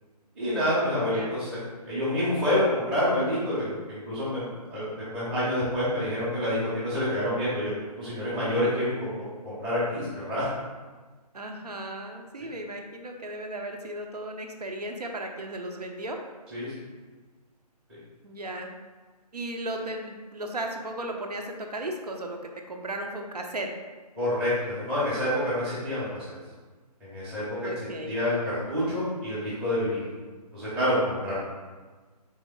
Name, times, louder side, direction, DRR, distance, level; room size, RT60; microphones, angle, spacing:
voice 1, 0.4-1.6 1.8-7.7 8.0-9.1 9.4-10.5 16.5-16.7 24.2-26.3 27.0-30.0 30.5-31.3, left 1 dB, 5° right, -12 dB, 0.6 m, -27 dB
voice 2, 11.3-16.2 18.2-18.7 19.3-23.7 27.6-28.2, right 1 dB, 70° right, 3 dB, 0.6 m, -35 dB
3.4 x 3.2 x 3.5 m, 1.4 s
figure-of-eight pair, 145°, 21 cm